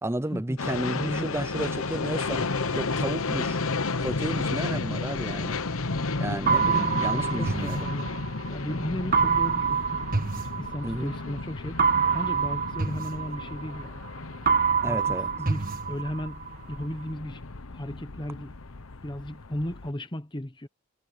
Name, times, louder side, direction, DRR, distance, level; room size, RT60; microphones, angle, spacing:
voice 1, 0.0-3.6 4.0-5.6 6.2-7.9 10.8-11.1 14.8-15.3, right 1 dB, 10° right, 0.6 m, -32 dB
sound 1, 0.6-19.9, left 3 dB, 75° left, 1.1 m, -33 dB
voice 2, 0.9-1.3 6.5-8.1 8.5-10.0 10.6-14.0 14.8-16.4 16.7-17.4 17.7-18.5 19.0-20.7, equal, 20° left, 1.3 m, -35 dB
sound 2, 6.5-8.5 9.1-11.2 11.8-14.1 14.5-16.5, right 6 dB, 40° right, 1.5 m, -26 dB
head